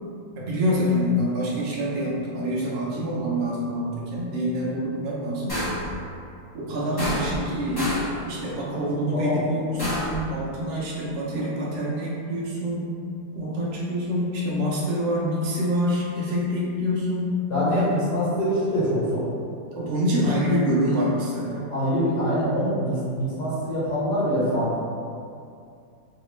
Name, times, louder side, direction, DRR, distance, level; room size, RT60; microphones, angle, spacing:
voice 1, 0.4-5.6 6.5-7.8 8.2-12.9 13.3-17.3 17.6-17.9 19.7-21.6, equal, 80° right, -6 dB, 0.5 m, -26 dB
sound 1, 5.5-5.9 7.0-7.5 7.8-8.2 9.8-10.2, left 1 dB, 30° left, 0.4 m, -27 dB
voice 2, 9.1-9.4 17.5-19.3 20.2-20.4 21.5-24.8, equal, 65° left, -12 dB, 1.5 m, -25 dB
3.3 x 2.8 x 3.1 m, 2.4 s
omnidirectional pair, 2.0 m